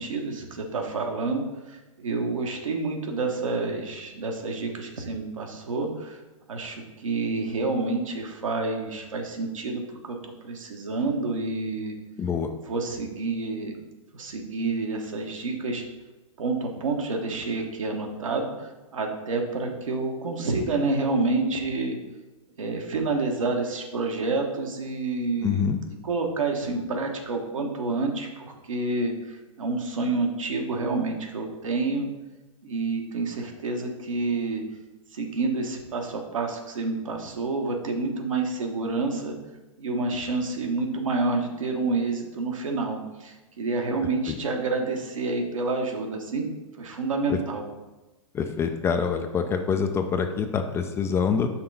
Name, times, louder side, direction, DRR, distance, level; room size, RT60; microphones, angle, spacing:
voice 1, 0.0-6.2 6.5-12.0 12.7-13.7 14.1-15.8 16.4-22.0 22.6-25.6 26.0-32.1 32.6-34.6 35.1-39.4 39.8-46.5 46.8-47.6, right 3 dB, 70° right, 2 dB, 1.1 m, -28 dB
voice 2, 12.2-12.5 25.4-25.8 44.3-44.4 47.3-47.4 48.3-51.5, left 6 dB, 15° left, 6 dB, 0.4 m, -25 dB
5.8 x 3.7 x 5.3 m, 1.1 s
figure-of-eight pair, 110°, 17 cm